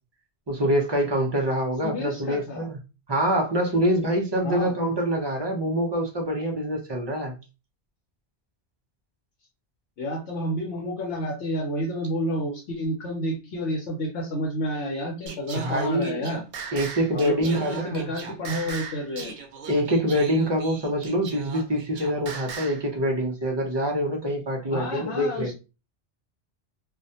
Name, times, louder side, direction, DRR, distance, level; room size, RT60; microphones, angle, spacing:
voice 1, 0.5-2.8 3.1-7.3 15.6-16.3 16.7-18.1 19.7-25.5, equal, 35° right, 0.4 m, -25 dB
voice 2, 1.8-2.7 4.4-4.7 10.0-16.4 17.1-19.3 24.7-25.5, equal, 80° left, 1.0 m, -30 dB
Singing, 15.3-22.8, right 5 dB, 65° right, 0.7 m, -39 dB
2.4 x 2.1 x 2.6 m
omnidirectional pair, 1.2 m